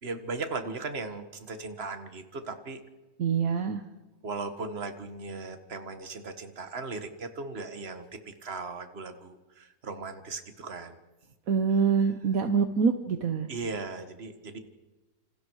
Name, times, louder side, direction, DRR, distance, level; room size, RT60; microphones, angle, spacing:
voice 1, 0.0-2.8 4.2-11.0 13.5-14.6, right 3 dB, 40° right, 8 dB, 1.8 m, -37 dB
voice 2, 3.2-3.8 11.5-13.5, right 6 dB, 60° right, 8 dB, 1.4 m, -25 dB
28.0 x 26.5 x 4.8 m, 1.2 s
omnidirectional pair, 1.7 m